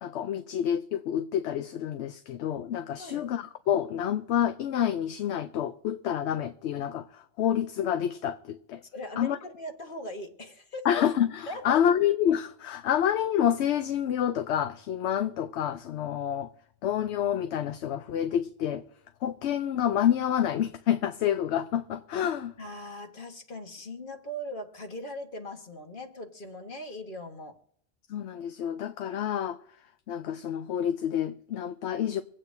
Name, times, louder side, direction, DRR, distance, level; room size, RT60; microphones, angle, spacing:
voice 1, 0.0-8.8 9.2-9.4 10.8-16.5 16.8-18.8 19.2-22.6 28.1-29.6 30.1-32.2, left 10 dB, 75° left, 0.9 m, -28 dB
voice 2, 8.9-10.9 11.5-11.8 22.6-27.5, left 1 dB, 50° left, 1.5 m, -40 dB
25.5 x 8.7 x 2.6 m
omnidirectional pair, 1.2 m